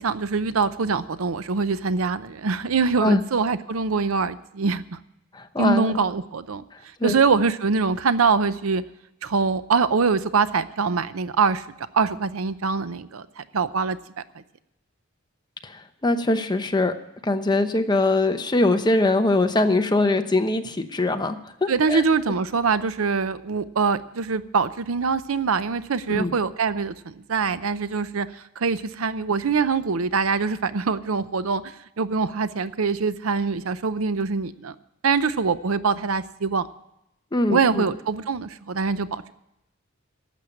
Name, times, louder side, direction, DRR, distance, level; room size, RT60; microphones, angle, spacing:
voice 1, 0.0-5.0 5.6-6.6 7.0-8.8 9.2-11.6 11.9-14.0 21.7-28.3 28.6-34.7 35.0-36.7 37.5-39.3, right 5 dB, 70° right, 14 dB, 0.6 m, -24 dB
voice 2, 5.3-6.0 7.0-7.2 15.6-16.9 17.2-22.0 26.1-26.3 37.3-37.8, left 2 dB, 20° left, 7 dB, 0.9 m, -22 dB
12.0 x 7.4 x 9.9 m, 0.82 s
head